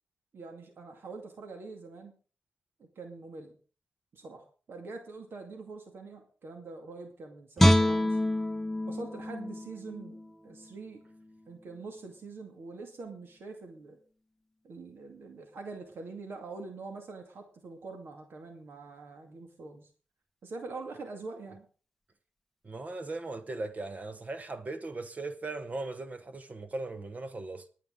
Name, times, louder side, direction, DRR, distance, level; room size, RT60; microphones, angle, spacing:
voice 1, 0.3-2.1 3.0-3.6 4.1-8.2 8.9-10.2 10.4-11.0 11.5-14.0 14.6-19.9 20.4-21.7, right 3 dB, 70° right, 2.2 m, -44 dB
Guitar, 7.6-10.7 11.1-11.3, left 1 dB, 5° left, 1.0 m, -27 dB
voice 2, 22.6-27.7, right 2 dB, 40° right, 1.2 m, -38 dB
20.5 x 9.1 x 3.8 m
cardioid pair, 80°, 4 cm